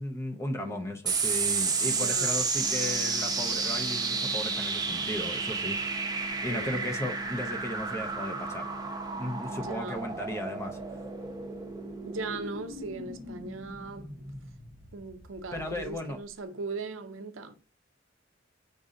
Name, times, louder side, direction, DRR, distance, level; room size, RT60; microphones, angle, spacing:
voice 1, 0.0-5.8 6.4-8.6 9.2-10.8 15.5-16.2, left 1 dB, 15° left, 0.6 m, -35 dB
sound 1, 1.1-15.9, right 4 dB, 20° right, 0.8 m, -32 dB
voice 2, 1.8-2.4 6.5-6.9 9.1-10.0 12.0-14.4 14.9-17.5, right 3 dB, 85° right, 0.6 m, -39 dB
sound 2, 2.6-12.6, right 3 dB, 35° left, 1.3 m, -44 dB
5.1 x 2.6 x 3.7 m
head